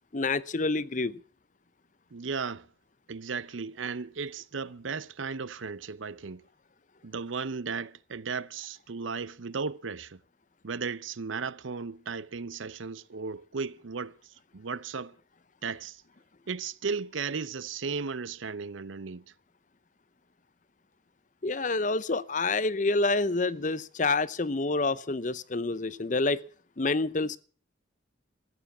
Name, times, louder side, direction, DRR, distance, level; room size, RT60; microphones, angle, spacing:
voice 1, 0.1-1.2 21.4-26.4 26.8-27.4, left 3 dB, 40° left, 0.7 m, -28 dB
voice 2, 2.1-2.7 3.1-6.4 7.0-10.2 10.6-14.2 14.5-15.2 15.6-16.0 16.5-19.2, right 5 dB, 85° right, 0.7 m, -35 dB
14.5 x 9.5 x 8.5 m
head